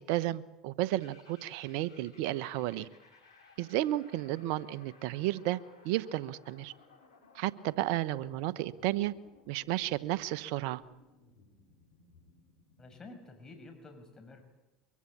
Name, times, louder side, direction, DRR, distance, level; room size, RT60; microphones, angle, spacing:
voice 1, 0.0-2.9 3.6-5.6 5.8-6.7 7.3-9.1 9.5-10.8, right 15 dB, 65° right, 17 dB, 1.1 m, -32 dB
sound 1, 1.0-13.1, left 4 dB, 90° left, 6.2 m, -60 dB
voice 2, 12.8-14.4, left 3 dB, 25° left, 5 dB, 6.5 m, -50 dB
24.0 x 23.0 x 8.7 m, 1.0 s
hypercardioid pair, 75°, 2 cm